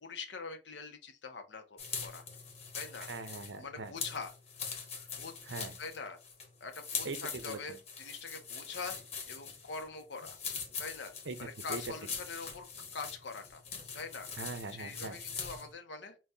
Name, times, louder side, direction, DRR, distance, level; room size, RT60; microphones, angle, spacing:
voice 1, 0.0-2.2 2.7-3.1 3.6-4.3 5.2-5.3 5.8-6.2 6.6-9.0 9.3-10.4 10.8-11.1 11.4-12.7 12.9-13.6 13.9-14.3 14.7-16.2, left 4 dB, 80° left, 0.7 m, -43 dB
sound 1, 1.8-15.7, left 6 dB, 35° left, 1.0 m, -43 dB
voice 2, 3.1-3.9 5.4-5.7 7.0-7.8 11.3-11.4 11.7-11.8 14.4-15.2, right 3 dB, 85° right, 0.7 m, -41 dB
4.1 x 2.2 x 3.4 m
head